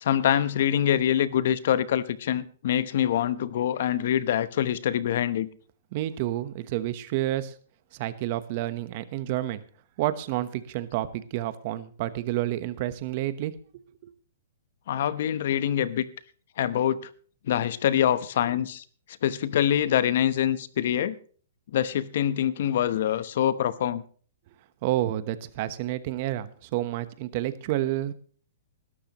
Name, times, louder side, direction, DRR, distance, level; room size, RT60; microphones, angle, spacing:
voice 1, 0.0-5.5 14.9-16.1 16.6-17.0 17.5-18.8 19.2-21.1 21.7-24.0, left 10 dB, 60° left, 0.9 m, -25 dB
voice 2, 5.9-7.5 7.9-9.6 10.0-13.5 14.0-14.1 24.8-28.1, right 14 dB, 40° right, 1.1 m, -29 dB
19.5 x 12.5 x 3.0 m
hypercardioid pair, 155°, 0 cm